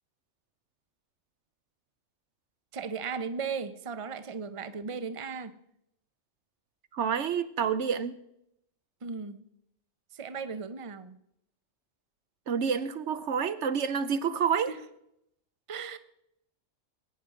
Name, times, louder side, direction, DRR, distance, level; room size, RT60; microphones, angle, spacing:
voice 1, 2.7-5.6 9.0-9.4 10.1-11.1 14.7-14.8 15.7-16.0, right 5 dB, 30° right, 0.8 m, -36 dB
voice 2, 6.9-8.1 12.5-14.7, right 7 dB, 75° right, 1.1 m, -28 dB
21.0 x 9.8 x 5.0 m
omnidirectional pair, 1.2 m